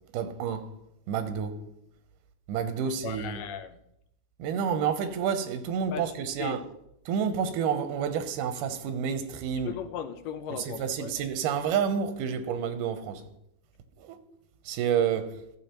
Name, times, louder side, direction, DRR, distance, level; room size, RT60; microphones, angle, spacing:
voice 1, 0.1-0.7 1.1-1.6 2.5-3.4 4.4-6.6 7.1-9.7 10.8-13.2 14.0-14.2 14.7-15.4, right 7 dB, 80° right, 2.4 m, -29 dB
voice 2, 2.8-3.8 5.9-6.6 9.6-11.2, left 8 dB, 90° left, 2.3 m, -38 dB
14.5 x 6.9 x 3.0 m
omnidirectional pair, 3.8 m